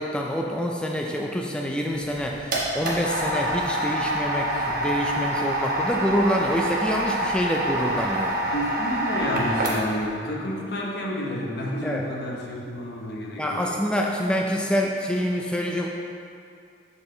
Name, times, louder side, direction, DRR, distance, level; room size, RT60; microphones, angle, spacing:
voice 1, 0.0-8.4 11.8-12.0 13.4-15.9, equal, 5° left, 0 dB, 0.4 m, -26 dB
sound 1, 2.0-10.1, right 1 dB, 55° right, 1.2 m, -26 dB
voice 2, 8.3-13.7, equal, 65° left, -2 dB, 1.0 m, -30 dB
6.1 x 5.6 x 3.9 m, 2.4 s
head